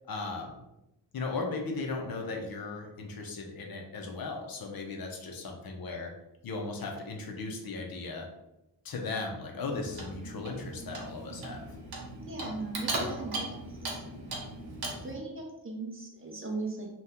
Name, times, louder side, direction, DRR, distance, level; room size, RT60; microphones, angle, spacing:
voice 1, 0.1-0.6 1.1-6.1 6.4-8.3 8.8-11.7, left 3 dB, 55° left, 1 dB, 0.6 m, -37 dB
Clock, 9.7-15.2, right 2 dB, 55° right, 0.8 m, -38 dB
voice 2, 12.3-13.6 13.9-14.0 15.0-16.9, right 3 dB, 30° right, 0 dB, 0.5 m, -38 dB
2.8 x 2.3 x 3.5 m, 0.90 s
wide cardioid pair, 150°, 43 cm